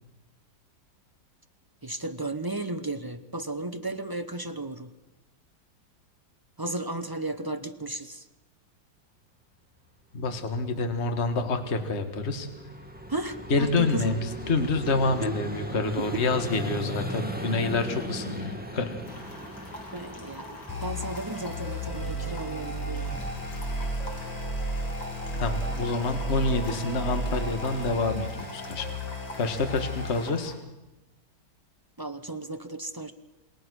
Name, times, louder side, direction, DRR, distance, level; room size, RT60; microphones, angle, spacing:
voice 1, 1.8-4.9 6.6-8.2 13.1-14.2 15.2-15.4 16.0-16.2 19.9-20.5 20.8-23.1 32.0-33.1, right 2 dB, 30° right, 8 dB, 0.4 m, -34 dB
voice 2, 10.1-12.5 13.5-19.0 25.4-29.0 29.3-30.5, left 3 dB, 35° left, 7 dB, 1.9 m, -27 dB
Vehicle, 10.3-25.0, right 1 dB, 5° right, 1.9 m, -39 dB
sound 1, 19.0-30.5, left 2 dB, 60° left, 3.6 m, -45 dB
sound 2, 20.7-30.3, equal, 20° left, 4.1 m, -33 dB
27.5 x 20.5 x 6.4 m, 1.0 s
omnidirectional pair, 2.0 m